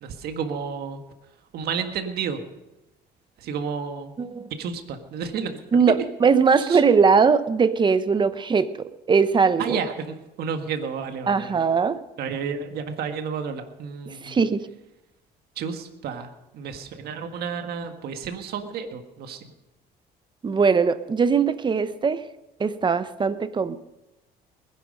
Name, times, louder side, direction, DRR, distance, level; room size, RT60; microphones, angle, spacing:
voice 1, 0.0-1.0 1.5-2.4 3.4-4.2 4.6-5.8 6.6-6.8 9.6-11.6 12.2-14.4 15.6-19.5, right 6 dB, 70° right, 7 dB, 1.6 m, -31 dB
voice 2, 4.2-4.5 5.7-9.8 11.3-12.0 14.1-14.7 20.4-22.2 22.6-23.8, right 5 dB, 25° right, 13 dB, 0.9 m, -20 dB
20.5 x 10.5 x 5.4 m, 0.98 s
cardioid pair, 110°, 17 cm